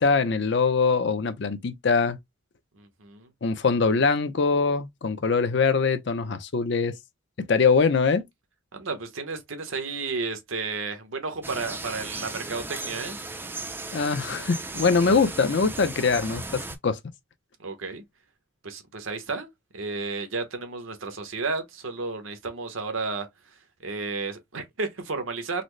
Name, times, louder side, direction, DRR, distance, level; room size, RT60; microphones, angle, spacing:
voice 1, 0.0-2.2 3.4-7.0 7.5-8.2 13.9-17.0, left 4 dB, 55° left, 0.5 m, -23 dB
voice 2, 2.7-3.3 8.7-13.5 17.6-18.0 18.6-19.5 19.7-25.6, right 4 dB, 75° right, 0.9 m, -33 dB
sound 1, 11.4-16.8, right 3 dB, 10° right, 0.3 m, -36 dB
3.9 x 2.0 x 3.1 m
head